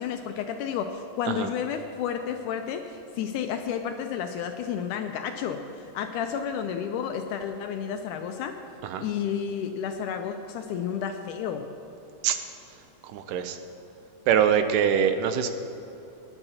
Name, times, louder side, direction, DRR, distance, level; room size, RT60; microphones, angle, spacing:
voice 1, 0.0-8.5 9.0-11.6, left 8 dB, 80° left, 6 dB, 1.9 m, -31 dB
voice 2, 13.1-13.6 14.3-15.5, right 8 dB, 80° right, 8 dB, 2.2 m, -23 dB
19.5 x 10.5 x 2.8 m, 2.8 s
omnidirectional pair, 3.9 m